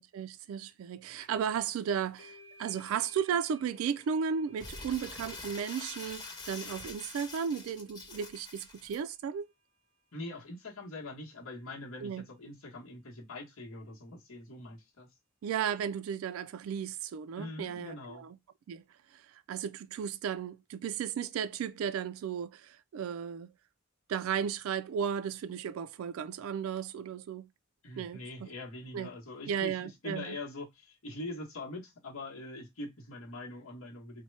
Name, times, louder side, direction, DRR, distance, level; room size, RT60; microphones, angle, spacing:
voice 1, 0.0-9.5 12.0-12.2 15.4-18.4 18.7-18.8 19.1-23.5 24.1-27.5 28.0-28.5 28.9-29.1 29.5-30.4, right 7 dB, 80° right, 0.3 m, -35 dB
sound 1, 1.2-1.5 1.8-9.1, equal, 45° left, 1.0 m, -60 dB
Crumpling crinkling, 4.6-9.0, left 3 dB, 20° left, 0.8 m, -45 dB
voice 2, 10.1-15.1 17.4-18.2 27.8-34.2, left 2 dB, 75° left, 1.0 m, -43 dB
4.2 x 2.2 x 3.1 m
head